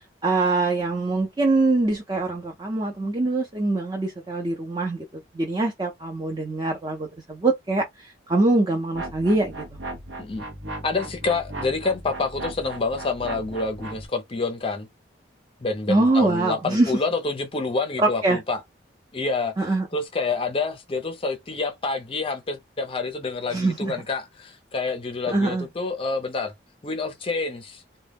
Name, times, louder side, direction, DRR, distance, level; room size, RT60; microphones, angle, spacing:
voice 1, 0.2-9.6 15.9-16.9 18.0-18.4 19.6-19.9 23.5-23.9 25.3-25.7, right 2 dB, 25° right, 0.5 m, -23 dB
sound 1, 8.9-14.1, right 2 dB, 75° right, 0.7 m, -37 dB
voice 2, 10.8-14.9 15.6-18.6 19.1-19.6 19.9-26.5 26.8-27.8, left 3 dB, 30° left, 0.5 m, -28 dB
2.2 x 2.0 x 3.3 m
head